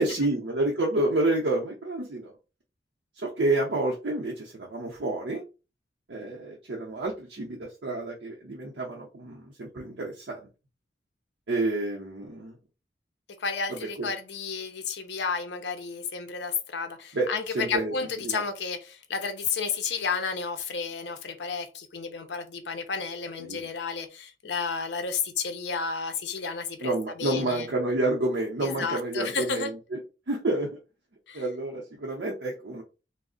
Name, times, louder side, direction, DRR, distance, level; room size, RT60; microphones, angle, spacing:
voice 1, 0.0-2.3 3.2-5.4 6.1-10.5 11.5-12.5 13.7-14.1 17.1-17.3 17.5-17.9 18.2-18.4 23.4-23.7 26.8-30.0 30.3-30.8 31.3-32.8, right 2 dB, 70° right, -3 dB, 0.6 m, -29 dB
voice 2, 13.4-26.9 27.2-27.7 28.6-29.7 31.3-31.4, left 5 dB, 70° left, 7 dB, 0.5 m, -32 dB
2.4 x 2.0 x 3.7 m, 0.31 s
head